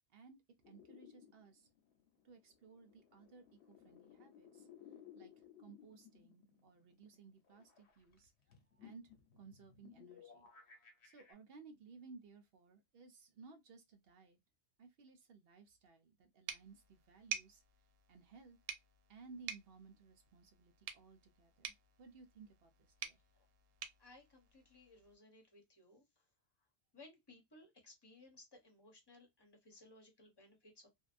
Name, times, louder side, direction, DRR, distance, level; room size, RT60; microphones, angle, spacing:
sound 1, 0.6-11.3, left 8 dB, 65° left, 1.0 m, -61 dB
voice 1, 0.7-1.7 2.2-4.7 5.1-8.3 8.8-10.5 11.0-14.4 14.8-17.6 18.1-18.6 19.1-23.2, right 4 dB, 60° right, 0.8 m, -59 dB
sound 2, 16.5-25.2, right 9 dB, 90° right, 0.9 m, -50 dB
voice 2, 24.0-26.0 26.9-30.9, left 2 dB, 20° left, 0.8 m, -61 dB
2.6 x 2.2 x 2.4 m
omnidirectional pair, 1.3 m